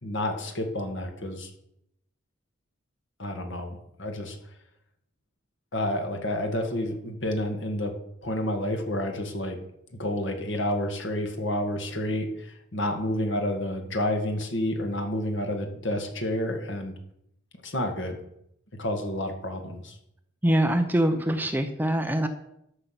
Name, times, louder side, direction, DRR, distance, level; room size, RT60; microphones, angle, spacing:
voice 1, 0.0-1.5 3.2-4.4 5.7-7.9 8.2-9.6 9.9-17.0 17.6-18.2 18.7-20.0, left 1 dB, 70° left, 4 dB, 1.9 m, -29 dB
voice 2, 20.4-22.3, right 1 dB, 10° right, 6 dB, 0.7 m, -24 dB
13.0 x 5.9 x 5.9 m, 0.78 s
head